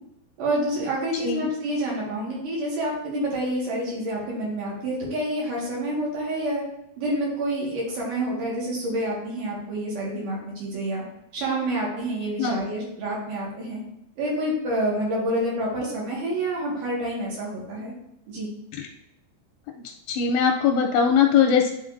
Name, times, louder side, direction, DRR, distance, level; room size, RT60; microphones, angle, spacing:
voice 1, 0.4-6.6 7.0-11.0 11.3-13.8 14.2-17.9 18.3-18.5, right 1 dB, 55° right, -4 dB, 2.7 m, -28 dB
voice 2, 20.1-21.7, left 7 dB, 85° left, 2 dB, 2.4 m, -20 dB
10.5 x 4.0 x 2.5 m, 0.80 s
omnidirectional pair, 5.1 m